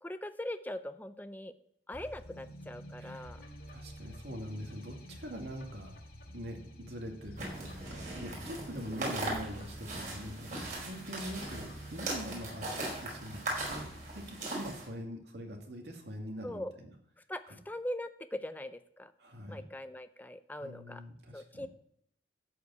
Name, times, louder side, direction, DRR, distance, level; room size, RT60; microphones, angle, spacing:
voice 1, 0.0-1.5 1.9-3.4 16.4-16.7 17.3-19.1 19.5-21.0 21.3-21.7, left 1 dB, 10° left, 10 dB, 0.5 m, -41 dB
sound 1, 1.9-14.3, equal, 55° left, 2.3 m, -49 dB
voice 2, 3.0-3.3 3.7-5.9 6.3-12.7 13.0-16.9 17.5-17.6 19.2-19.7 20.6-21.7, equal, 65° right, 2 dB, 2.2 m, -43 dB
sound 2, 7.4-14.9, right 2 dB, 45° right, 5.1 m, -39 dB
13.0 x 5.0 x 8.2 m, 0.71 s
head